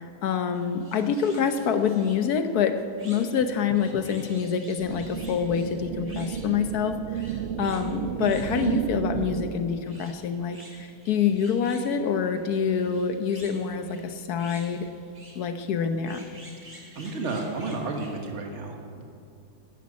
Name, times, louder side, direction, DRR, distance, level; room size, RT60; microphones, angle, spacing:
voice 1, 0.0-7.2 7.6-14.9 15.3-16.2, left 7 dB, 70° left, 8 dB, 1.4 m, -26 dB
sound 1, 0.5-18.3, right 1 dB, 30° right, 2.7 m, -51 dB
sound 2, 4.8-9.8, right 8 dB, 60° right, 0.7 m, -32 dB
voice 2, 16.9-19.0, right 3 dB, 45° right, 3 dB, 1.7 m, -32 dB
12.0 x 10.5 x 8.4 m, 2.6 s
omnidirectional pair, 1.8 m